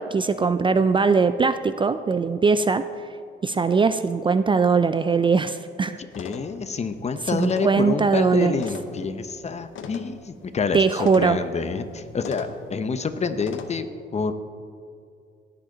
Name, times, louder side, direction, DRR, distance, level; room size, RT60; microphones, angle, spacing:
voice 1, 0.0-2.9 3.4-6.0 7.3-8.6 10.7-11.4, right 5 dB, 25° right, 11 dB, 0.3 m, -21 dB
sound 1, 6.1-13.7, left 6 dB, 75° left, 0.9 m, -41 dB
voice 2, 6.2-13.9 14.1-14.3, left 5 dB, 35° left, 10 dB, 0.7 m, -27 dB
18.0 x 7.8 x 3.9 m, 2.4 s
cardioid pair, 90°, 20 cm